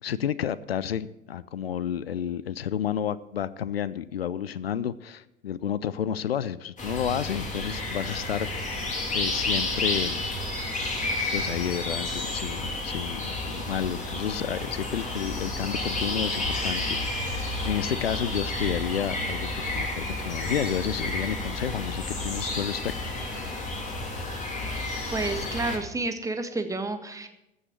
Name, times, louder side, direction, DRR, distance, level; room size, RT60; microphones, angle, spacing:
voice 1, 0.0-10.3 11.3-22.9, left 9 dB, 85° left, 18 dB, 0.5 m, -31 dB
sound 1, 6.8-25.8, left 2 dB, 25° left, 3.2 m, -31 dB
voice 2, 25.1-27.3, right 2 dB, 10° right, 7 dB, 1.5 m, -30 dB
15.0 x 6.4 x 7.6 m, 0.91 s
figure-of-eight pair, 85°, 29 cm